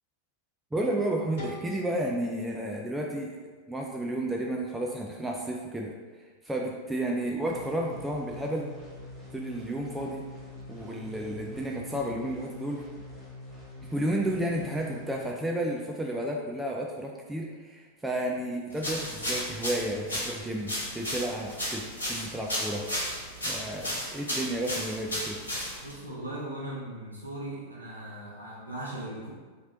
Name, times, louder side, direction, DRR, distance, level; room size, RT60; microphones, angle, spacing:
voice 1, 0.7-3.4 3.7-5.9 6.4-8.7 9.3-10.3 10.7-12.8 13.9-22.9 23.4-25.4, right 1 dB, 5° right, -1 dB, 0.3 m, -32 dB
sound 1, 1.4-4.2, left 3 dB, 60° left, 1.1 m, -46 dB
sound 2, 7.4-15.2, left 2 dB, 10° left, 1.1 m, -45 dB
sound 3, 18.8-26.0, equal, 80° left, 0.9 m, -34 dB
voice 2, 25.8-29.3, right 1 dB, 85° right, -5 dB, 0.5 m, -38 dB
2.9 x 2.9 x 3.8 m, 1.5 s
figure-of-eight pair, 90°, 0 cm